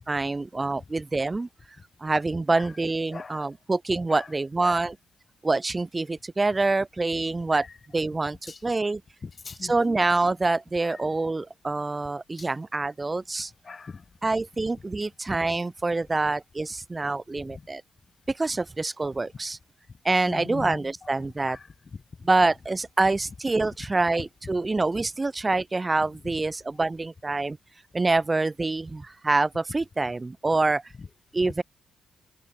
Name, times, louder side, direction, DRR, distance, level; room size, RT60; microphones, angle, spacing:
voice 1, 0.1-1.5 2.0-4.9 5.4-7.6 7.9-9.0 9.6-13.5 14.2-17.8 18.3-19.6 20.0-21.6 22.2-27.6 27.9-30.8 31.3-31.6, right 3 dB, 20° right, 1.6 m, -26 dB
voice 2, 3.1-3.5 4.1-4.9 7.5-7.8 8.4-8.6 9.2-10.0 10.8-11.1 12.4-12.5 13.6-14.0 17.5-17.6 20.3-21.1 21.4-22.0 23.7-23.8 26.2-26.4 31.0-31.1 31.4-31.5, left 4 dB, 35° left, 2.6 m, -41 dB
cardioid pair, 95°, 0 cm